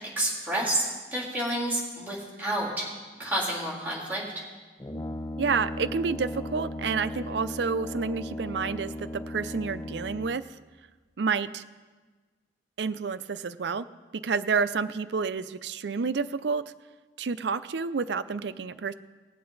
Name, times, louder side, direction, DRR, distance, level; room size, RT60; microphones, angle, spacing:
voice 1, 0.2-2.9 3.2-4.2, right 1 dB, 10° right, -5 dB, 3.4 m, -29 dB
Brass instrument, 4.8-10.6, left 1 dB, 20° left, 0.4 m, -37 dB
voice 2, 5.4-10.4 11.2-11.6 12.8-13.8 14.2-16.6 17.2-18.9, right 5 dB, 75° right, 14 dB, 0.5 m, -29 dB
19.5 x 7.6 x 4.0 m, 1.3 s
head